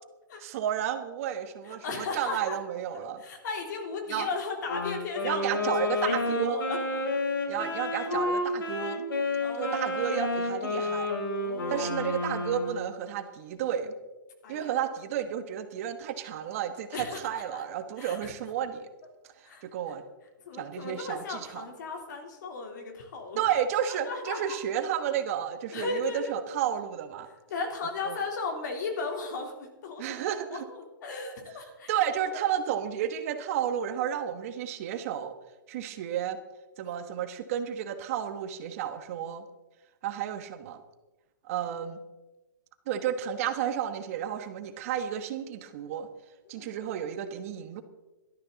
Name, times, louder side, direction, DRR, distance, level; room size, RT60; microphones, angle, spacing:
voice 1, 0.4-3.2 4.1-4.3 5.2-6.6 7.5-9.0 9.6-11.1 11.7-13.9 14.5-18.9 19.6-20.0 20.5-21.7 23.4-27.3 28.0-28.2 30.0-30.7 31.9-35.3 35.7-36.4 36.8-39.4 40.0-40.8 41.4-42.0 42.9-46.1 46.5-47.8, right 9 dB, 40° right, 9 dB, 1.3 m, -32 dB
voice 2, 1.6-2.6 3.2-5.5 5.8-7.0 9.4-10.1 11.4-12.1 14.4-14.7 16.9-17.6 18.0-18.3 19.5-19.6 20.5-23.4 23.9-24.6 25.7-26.3 27.5-30.2 30.5-31.9 32.3-32.4 46.5-46.7, left 4 dB, 60° left, 2 dB, 3.5 m, -36 dB
Wind instrument woodwind instrument, 4.7-13.0, left 2 dB, 85° left, 4.4 m, -30 dB
17.5 x 13.0 x 4.0 m, 1.1 s
hypercardioid pair, 155°, 11 cm